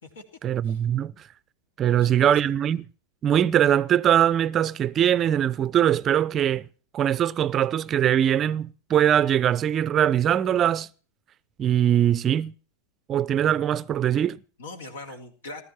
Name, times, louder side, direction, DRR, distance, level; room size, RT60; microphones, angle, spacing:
voice 1, 0.4-1.1 1.8-2.9 3.2-6.6 6.9-10.9 11.6-12.5 13.1-14.4, right 10 dB, 30° right, 0.6 m, -22 dB
voice 2, 1.8-2.4 14.6-15.6, left 2 dB, 65° left, 3.2 m, -41 dB
19.5 x 13.0 x 4.4 m
figure-of-eight pair, 90°, 0 cm